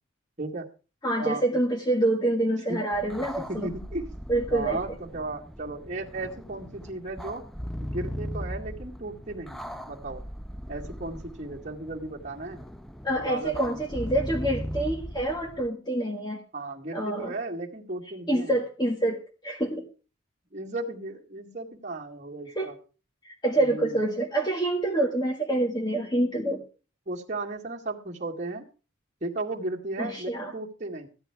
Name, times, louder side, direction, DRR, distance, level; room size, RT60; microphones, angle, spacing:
voice 1, 1.0-3.7 4.3-4.8 13.0-16.4 16.9-17.3 18.3-19.8 22.5-22.7 23.2-26.6 30.0-30.5, right 1 dB, 20° left, 2 dB, 1.6 m, -27 dB
sound 1, 2.9-15.7, equal, ahead, 0.6 m, -38 dB
voice 2, 3.5-4.1 4.5-7.4 7.8-10.2 10.7-12.6 13.2-13.8 16.5-18.6 20.5-22.8 23.6-24.0 27.1-28.7 29.2-31.1, right 2 dB, 35° right, -3 dB, 2.1 m, -35 dB
15.0 x 11.0 x 4.6 m, 0.35 s
head